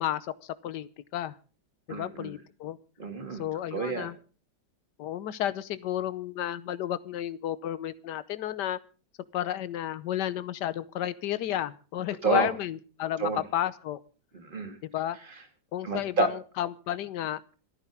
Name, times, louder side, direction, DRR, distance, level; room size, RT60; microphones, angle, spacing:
voice 1, 0.0-1.4 1.9-2.8 3.3-4.2 5.0-8.8 9.3-14.0 14.8-15.2 15.7-17.4, left 11 dB, 75° left, 16 dB, 1.5 m, -32 dB
voice 2, 1.9-2.3 3.0-4.1 12.2-12.5 13.2-13.4 14.3-14.8 15.8-16.3, right 4 dB, 30° right, 5 dB, 2.5 m, -29 dB
26.5 x 9.9 x 3.6 m, 0.39 s
omnidirectional pair, 1.9 m